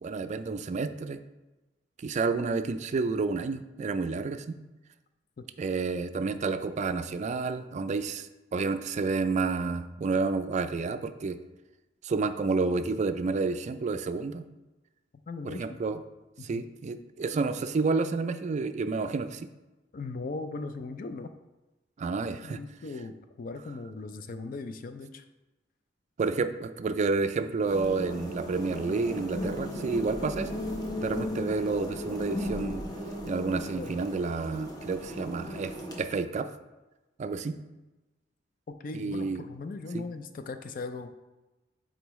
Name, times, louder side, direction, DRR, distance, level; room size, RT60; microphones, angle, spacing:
voice 1, 0.0-1.2 2.0-4.6 5.6-11.4 12.0-14.5 15.4-16.0 16.4-19.4 22.0-22.6 26.2-30.5 31.0-32.8 33.3-36.5 37.2-37.6 38.9-39.4 39.9-40.1, right 4 dB, 40° right, 10 dB, 0.3 m, -30 dB
voice 2, 15.3-15.8 16.4-16.6 19.9-21.3 22.4-25.2 33.7-33.9 38.8-41.1, left 3 dB, 50° left, 9 dB, 0.4 m, -38 dB
sound 1, 27.7-36.0, left 1 dB, 20° left, 0.9 m, -36 dB
8.1 x 3.9 x 3.1 m, 1.1 s
head